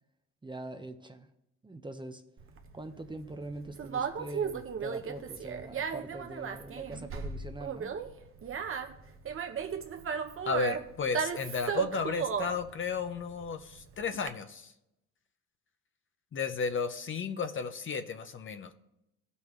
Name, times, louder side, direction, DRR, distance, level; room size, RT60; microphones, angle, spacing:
voice 1, 0.4-1.3 1.6-2.2 2.7-7.9, right 2 dB, 15° right, 7 dB, 0.8 m, -43 dB
Conversation, 2.4-14.3, right 7 dB, 45° right, 1.0 m, -36 dB
voice 2, 10.4-14.7 16.3-18.7, left 5 dB, 40° left, 9 dB, 0.8 m, -33 dB
16.0 x 5.5 x 3.2 m, 0.85 s
cardioid pair, 85°, 31 cm